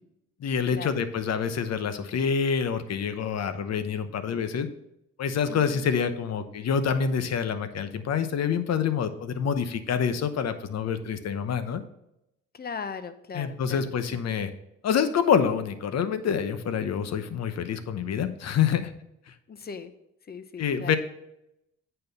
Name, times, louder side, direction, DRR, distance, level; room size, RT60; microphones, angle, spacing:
voice 1, 0.4-4.7 5.2-11.8 13.3-14.5 14.8-18.9 20.6-21.0, left 7 dB, 60° left, 10 dB, 0.9 m, -27 dB
voice 2, 5.5-5.9 12.5-14.2 19.5-19.9 20.3-20.9, left 5 dB, 30° left, 11 dB, 0.8 m, -39 dB
8.6 x 4.5 x 5.3 m, 0.84 s
cardioid pair, 90°, 30 cm